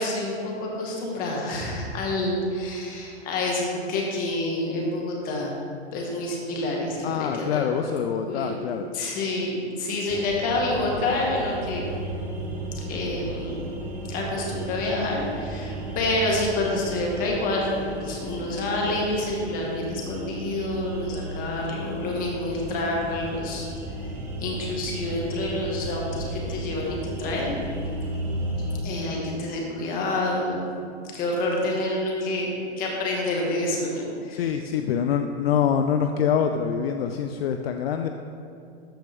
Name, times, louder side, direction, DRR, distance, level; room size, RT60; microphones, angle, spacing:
voice 1, 0.0-5.5 5.9-7.9 8.3-8.5 8.9-11.9 12.9-13.6 14.1-23.7 24.4-27.6 28.8-30.6 31.1-34.5, left 2 dB, 25° left, -2 dB, 1.6 m, -28 dB
voice 2, 7.0-8.9 34.3-38.1, left 8 dB, 60° left, 6 dB, 0.5 m, -25 dB
sound 1, 10.1-28.8, right 1 dB, 5° right, 0.3 m, -34 dB
13.0 x 5.1 x 3.5 m, 2.5 s
hypercardioid pair, 150°, 34 cm